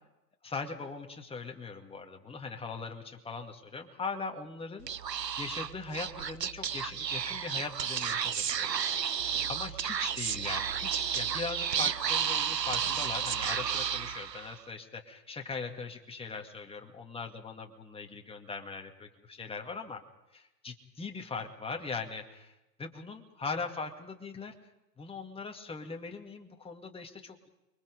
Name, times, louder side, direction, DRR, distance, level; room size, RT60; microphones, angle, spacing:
voice 1, 0.4-4.9 5.4-9.0 9.5-20.0 20.3-24.5 25.0-27.4, left 4 dB, 10° left, 3 dB, 2.2 m, -40 dB
Speech / Whispering, 4.8-14.6, right 8 dB, 85° right, 0.9 m, -32 dB
29.0 x 23.0 x 5.2 m, 0.96 s
figure-of-eight pair, 95°, 49 cm